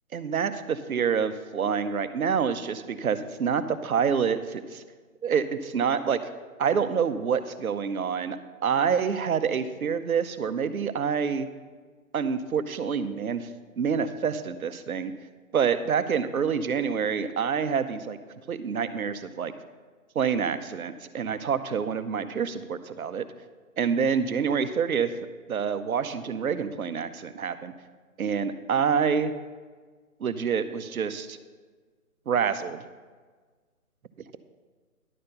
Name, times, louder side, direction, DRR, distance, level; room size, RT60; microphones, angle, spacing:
voice 1, 0.1-4.8 5.2-6.2 6.6-8.4 8.6-11.5 12.1-13.5 13.8-15.1 15.5-18.2 18.5-19.5 20.1-23.2 23.8-25.1 25.5-27.7 28.2-29.3 30.2-31.4 32.3-32.8, right 6 dB, 75° right, 11 dB, 0.8 m, -27 dB
11.0 x 4.3 x 6.5 m, 1.4 s
hypercardioid pair, 165°, 43 cm